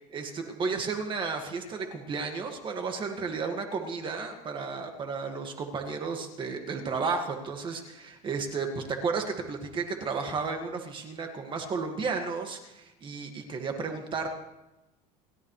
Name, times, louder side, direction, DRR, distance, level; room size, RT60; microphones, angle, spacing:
voice 1, 0.1-14.3, right 4 dB, 30° right, 4 dB, 1.9 m, -33 dB
29.5 x 13.0 x 3.2 m, 0.98 s
cardioid pair, 145°, 17 cm